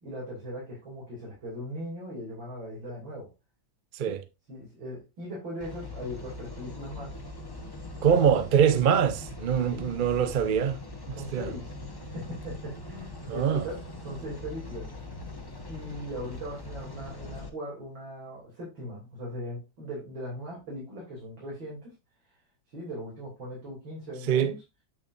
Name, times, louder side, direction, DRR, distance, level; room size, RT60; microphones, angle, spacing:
voice 1, 0.0-3.3 4.0-4.2 4.5-7.2 8.1-8.4 9.7-9.9 11.1-14.9 15.7-21.9 22.7-24.6, equal, 90° right, 3.6 m, -39 dB
sound 1, 5.6-17.5, left 2 dB, 20° left, 0.8 m, -41 dB
voice 2, 8.0-10.8 11.1-11.5 13.3-13.7 24.3-24.5, right 8 dB, 65° right, 0.5 m, -24 dB
8.2 x 6.8 x 2.6 m
omnidirectional pair, 2.0 m